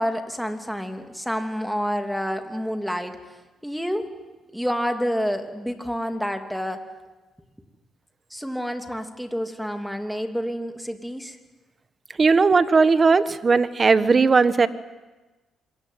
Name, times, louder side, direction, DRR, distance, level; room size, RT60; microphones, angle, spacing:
voice 1, 0.0-3.2 3.6-4.1 4.5-6.8 8.3-11.4, equal, ahead, 6 dB, 3.0 m, -28 dB
voice 2, 12.2-14.7, right 4 dB, 35° right, 13 dB, 1.4 m, -17 dB
26.5 x 22.0 x 9.5 m, 1.2 s
cardioid pair, 90°, 0 cm